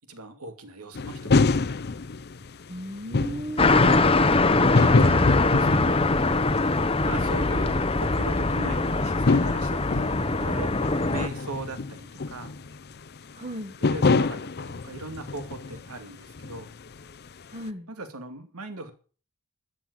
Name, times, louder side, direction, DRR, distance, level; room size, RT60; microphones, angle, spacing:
voice 1, 0.1-1.8 3.6-4.0 4.8-6.0 7.0-12.5 13.9-16.7 17.9-18.9, right 2 dB, 75° right, 8 dB, 2.5 m, -39 dB
sound 1, 1.0-16.1 16.3-17.3, left 3 dB, 45° left, 0.6 m, -27 dB
voice 2, 2.7-4.0 13.3-13.7 17.5-17.9, right 1 dB, 30° right, 4 dB, 1.4 m, -35 dB
sound 2, 3.6-11.3, left 2 dB, 25° left, 0.9 m, -22 dB
13.0 x 7.9 x 8.2 m, 0.40 s
head